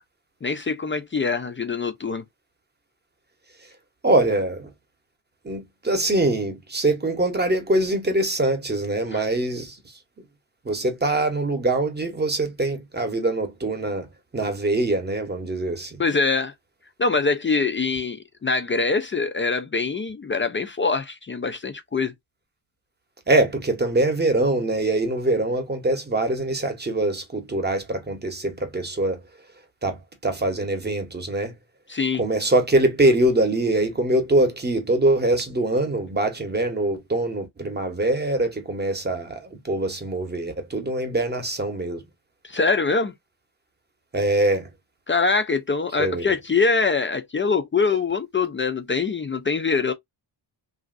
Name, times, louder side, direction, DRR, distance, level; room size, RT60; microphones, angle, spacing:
voice 1, 0.4-2.2 9.1-9.2 16.0-16.5 17.0-22.1 31.9-32.2 42.4-43.1 45.1-49.9, left 4 dB, 30° left, 0.3 m, -24 dB
voice 2, 4.0-4.7 5.4-9.8 10.7-14.1 14.3-16.0 23.3-29.2 29.8-30.0 30.2-31.5 32.2-42.0 44.1-44.7 46.0-46.3, right 2 dB, 20° right, 0.8 m, -23 dB
3.0 x 2.5 x 2.4 m
wide cardioid pair, 135°, 46 cm